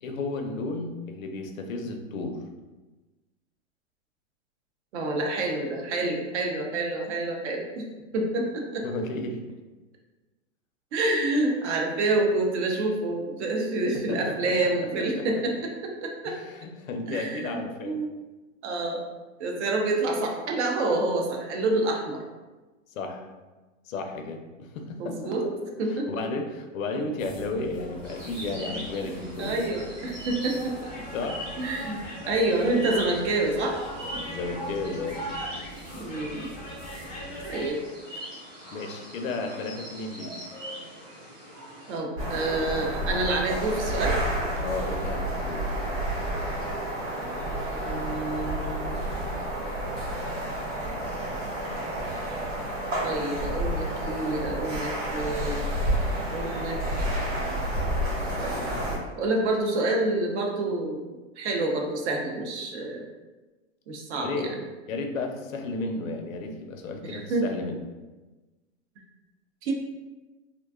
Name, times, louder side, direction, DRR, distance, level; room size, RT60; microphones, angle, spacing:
voice 1, 0.0-2.4 8.8-9.6 14.1-14.5 15.2-15.3 16.3-18.0 22.9-23.3 23.9-25.3 25.9-29.7 31.1-31.7 34.2-35.2 38.7-40.3 44.6-45.7 64.2-64.5 64.9-67.8, left 3 dB, 85° left, 4 dB, 0.5 m, -33 dB
voice 2, 4.9-7.8 8.1-8.9 10.9-16.3 17.1-18.1 18.6-19.0 19.4-22.2 25.0-25.4 25.8-26.1 28.7-28.8 29.4-30.9 31.6-33.8 34.1-34.2 35.9-36.5 37.4-37.8 41.9-44.2 47.7-49.0 53.0-55.7 56.2-56.8 59.1-61.0 61.4-63.1 63.9-64.5 67.0-67.5 69.6-69.7, right 2 dB, 60° right, 1 dB, 0.6 m, -28 dB
sound 1, 27.2-37.7, equal, 15° left, 0.4 m, -40 dB
sound 2, 28.0-42.0, right 1 dB, 10° right, 0.8 m, -41 dB
sound 3, 42.2-59.0, right 1 dB, 85° right, 1.2 m, -30 dB
2.5 x 2.2 x 2.3 m, 1.2 s
hypercardioid pair, 140°, 39 cm